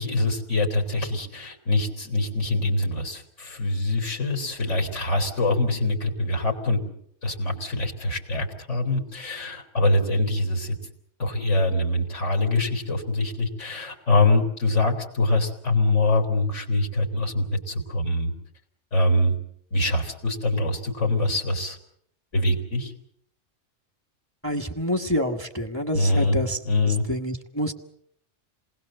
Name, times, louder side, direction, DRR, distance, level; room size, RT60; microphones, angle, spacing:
voice 1, 0.0-6.8 7.2-10.8 11.2-18.3 18.9-19.3 19.7-21.8 22.3-22.9 25.9-27.1, left 2 dB, 80° left, 3 dB, 4.2 m, -24 dB
voice 2, 24.4-27.7, equal, 10° left, 8 dB, 1.4 m, -28 dB
27.5 x 20.0 x 7.7 m, 0.69 s
omnidirectional pair, 1.2 m